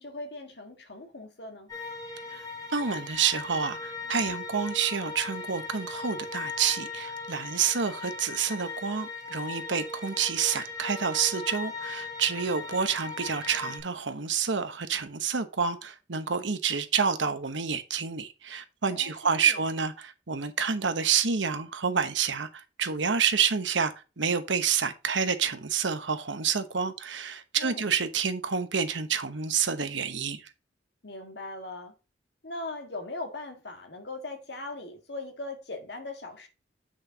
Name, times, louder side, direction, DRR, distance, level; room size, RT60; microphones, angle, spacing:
voice 1, 0.0-1.7 18.9-19.1 19.4-19.7 27.6-27.9 31.0-31.9 32.4-36.5, left 2 dB, 65° left, 1.7 m, -39 dB
sound 1, 1.7-13.8, left 4 dB, 20° left, 3.4 m, -38 dB
voice 2, 2.7-30.4, right 6 dB, 85° right, 1.0 m, -28 dB
8.2 x 6.4 x 2.8 m
head